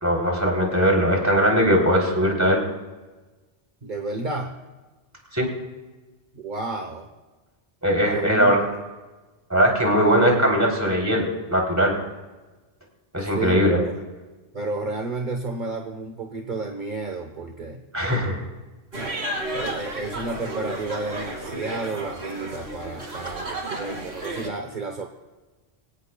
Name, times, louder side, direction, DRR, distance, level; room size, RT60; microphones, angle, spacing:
voice 1, 0.0-2.6 5.3-5.5 7.8-8.7 9.5-11.9 13.1-13.8 17.9-18.4, equal, 15° right, -1 dB, 3.5 m, -20 dB
voice 2, 3.8-4.5 6.3-7.1 8.1-8.8 13.2-13.9 14.5-17.8 18.9-19.1 19.5-25.1, right 3 dB, 50° right, 3 dB, 1.3 m, -31 dB
sound 1, 18.9-24.5, right 1 dB, 80° right, 2.4 m, -32 dB
24.5 x 17.0 x 2.3 m, 1.2 s
omnidirectional pair, 1.1 m